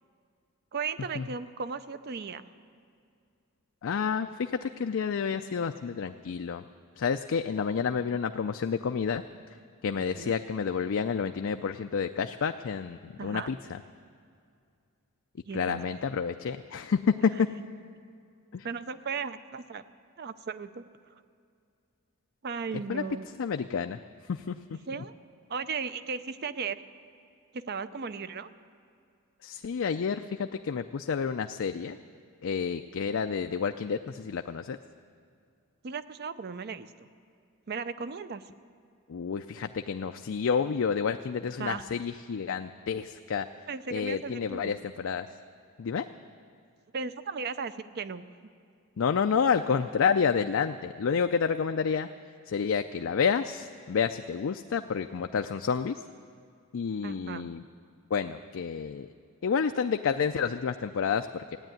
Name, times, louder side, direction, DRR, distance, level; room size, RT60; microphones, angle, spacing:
voice 1, 0.7-2.5 10.0-10.4 13.2-13.5 15.4-15.8 18.6-19.8 20.2-20.8 22.4-23.3 24.9-25.1 25.5-26.8 27.5-28.5 35.8-37.1 37.7-38.4 41.6-41.8 43.7-44.7 46.9-48.2 57.0-57.5, right 5 dB, 45° right, 13 dB, 0.5 m, -36 dB
voice 2, 3.8-6.6 7.0-9.2 9.8-13.6 15.5-17.3 18.5-18.7 22.9-23.0 23.4-24.0 24.3-24.6 25.0-25.1 29.4-32.0 32.4-34.8 39.1-43.5 43.9-45.3 45.8-46.0 49.0-52.1 52.5-55.9 56.7-57.6 58.1-59.1 59.4-61.6, left 6 dB, 60° left, 7 dB, 0.4 m, -29 dB
15.5 x 9.7 x 9.1 m, 2.3 s
head